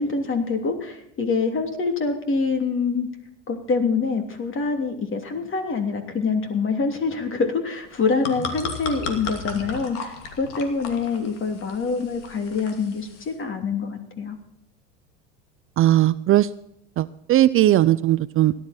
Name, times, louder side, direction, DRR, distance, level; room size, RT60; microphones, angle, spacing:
voice 1, 0.0-3.1 3.5-14.4, left 4 dB, 35° left, 6 dB, 3.1 m, -25 dB
sound 1, 7.9-13.3, left 4 dB, 75° left, 2.7 m, -35 dB
voice 2, 15.8-16.5 17.0-18.5, right 14 dB, 40° right, 16 dB, 0.5 m, -18 dB
17.5 x 12.0 x 4.3 m, 0.76 s
hypercardioid pair, 90°, 35 cm